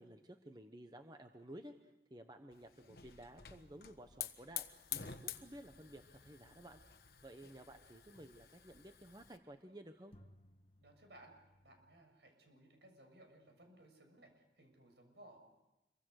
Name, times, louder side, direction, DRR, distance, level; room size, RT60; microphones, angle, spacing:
voice 1, 0.0-1.7 2.1-4.7 4.9-6.8 7.2-10.1, right 1 dB, 25° right, 6 dB, 1.1 m, -54 dB
Hiss / Fire, 2.5-9.4, left 10 dB, 55° left, 1.3 m, -49 dB
sound 1, 9.6-9.7 10.1-12.0, equal, 35° left, 1.7 m, -68 dB
voice 2, 10.8-11.4 11.6-15.4, right 1 dB, 80° right, 4 dB, 6.7 m, -61 dB
27.5 x 24.0 x 6.5 m, 0.97 s
head